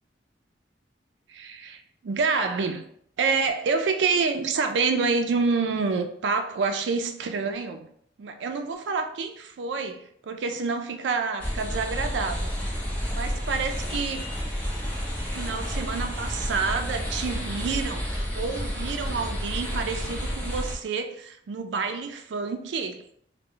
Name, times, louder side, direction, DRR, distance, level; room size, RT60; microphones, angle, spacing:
voice 1, 1.3-2.8 3.2-7.9 8.2-12.5 13.1-14.3 15.3-18.1 18.3-23.0, right 4 dB, 75° right, 7 dB, 0.3 m, -28 dB
sound 1, 11.4-20.7, equal, 10° left, 0.6 m, -30 dB
2.2 x 2.1 x 3.7 m, 0.67 s
head